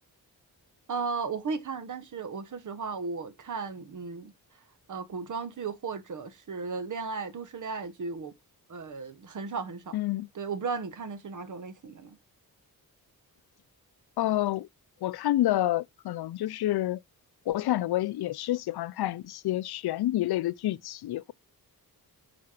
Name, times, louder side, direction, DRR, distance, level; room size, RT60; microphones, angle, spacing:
voice 1, 0.9-4.3 4.9-8.3 8.7-10.0 10.3-12.2, right 4 dB, 55° right, 1.1 m, -35 dB
voice 2, 9.9-10.3 14.2-14.7 15.0-17.0 17.5-21.3, left 14 dB, 90° left, 0.5 m, -28 dB
9.6 x 4.3 x 5.8 m
wide cardioid pair, 160°, 37 cm